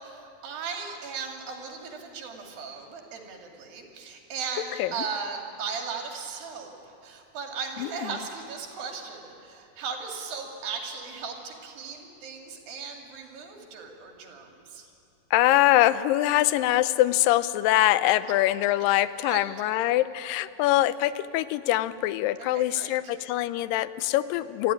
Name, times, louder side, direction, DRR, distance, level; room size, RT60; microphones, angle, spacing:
voice 1, 0.0-6.8 7.0-14.9 19.2-19.5 22.4-23.1, right 5 dB, 80° right, 2 dB, 4.0 m, -37 dB
voice 2, 7.8-8.1 15.3-24.7, left 15 dB, 80° left, 15 dB, 2.3 m, -23 dB
23.5 x 14.5 x 10.0 m, 2.5 s
omnidirectional pair, 4.1 m